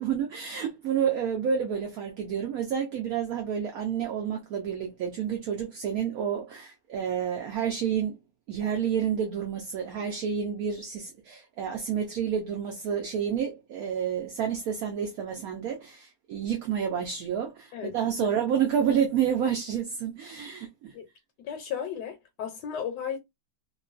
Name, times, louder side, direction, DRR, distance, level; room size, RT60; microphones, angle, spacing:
voice 1, 0.0-8.2 8.5-20.9, right 8 dB, 70° right, 0.9 m, -29 dB
voice 2, 17.7-18.3 20.9-21.0 21.4-23.2, left 8 dB, 75° left, 1.2 m, -35 dB
2.9 x 2.2 x 2.3 m
omnidirectional pair, 1.9 m